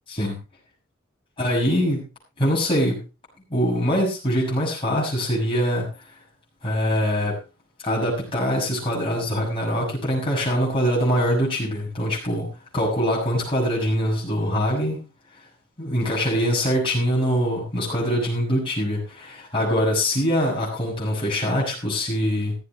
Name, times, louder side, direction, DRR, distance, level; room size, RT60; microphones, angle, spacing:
voice 1, 1.4-2.0 2.4-3.0 3.5-5.9 6.6-7.4 7.8-15.0 15.8-22.6, equal, 25° left, -4 dB, 6.6 m, -23 dB
16.0 x 14.5 x 3.1 m, 0.30 s
head